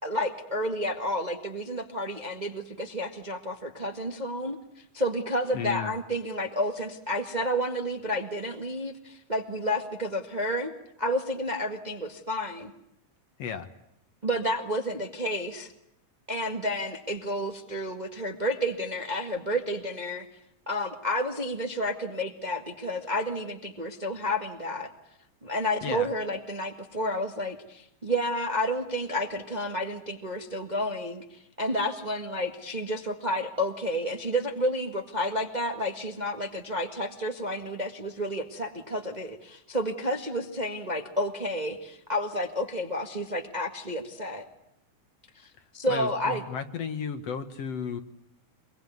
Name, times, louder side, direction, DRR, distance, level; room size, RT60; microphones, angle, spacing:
voice 1, 0.0-10.7 11.0-12.7 14.2-15.7 16.3-20.3 20.7-24.9 25.4-44.5 45.3-46.4, equal, 20° right, 5 dB, 1.3 m, -30 dB
voice 2, 5.5-6.0 13.4-13.7 25.8-26.1 45.9-48.0, left 7 dB, 60° left, 10 dB, 2.3 m, -34 dB
25.5 x 22.5 x 9.5 m, 0.78 s
omnidirectional pair, 3.5 m